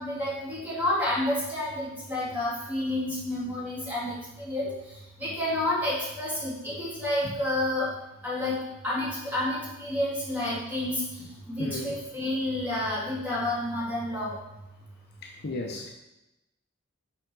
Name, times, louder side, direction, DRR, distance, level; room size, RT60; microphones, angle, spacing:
voice 1, 0.0-4.7 5.2-7.9 8.2-14.4, left 1 dB, 10° right, -7 dB, 2.6 m, -30 dB
voice 2, 11.6-11.9 15.2-15.9, left 2 dB, 50° left, 1 dB, 0.7 m, -34 dB
6.0 x 5.7 x 4.7 m, 0.91 s
head